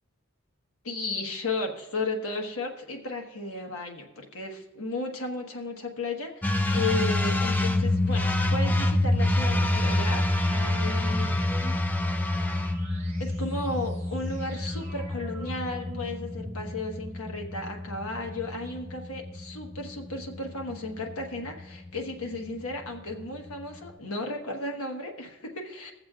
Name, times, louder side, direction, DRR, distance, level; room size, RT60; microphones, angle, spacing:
voice 1, 0.8-11.8 13.2-25.9, left 2 dB, 80° left, 2 dB, 1.3 m, -34 dB
sound 1, 6.4-23.9, left 1 dB, 10° left, 0.4 m, -28 dB
sound 2, 10.8-17.1, right 1 dB, 30° right, 1.3 m, -46 dB
21.5 x 7.3 x 2.4 m, 1.0 s
head